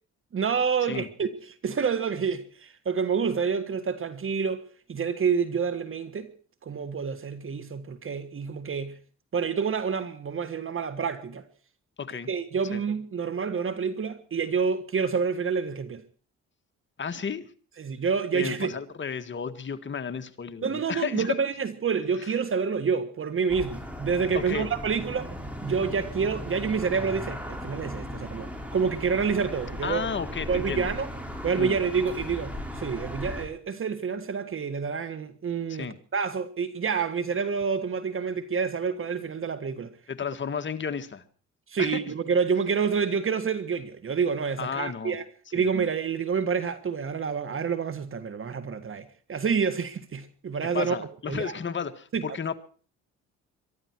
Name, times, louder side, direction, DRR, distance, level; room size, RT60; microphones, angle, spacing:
voice 1, 0.3-6.3 6.6-8.9 9.3-11.4 12.3-16.0 17.8-18.7 20.6-25.3 25.6-30.0 30.5-31.1 31.4-39.9 41.7-45.2 45.5-51.0 51.3-51.5 52.1-52.2, right 6 dB, 45° right, 1.6 m, -28 dB
voice 2, 12.0-12.3 12.7-12.8 17.0-17.5 18.3-21.4 22.2-22.3 24.3-24.7 29.8-30.9 31.6-31.8 35.7-36.0 40.1-41.2 41.8-42.0 44.6-45.2 45.6-45.7 50.7-52.5, left 6 dB, 40° left, 1.8 m, -33 dB
sound 1, 23.5-33.5, left 1 dB, 5° right, 5.4 m, -37 dB
23.5 x 12.5 x 4.6 m
cardioid pair, 90°, 30 cm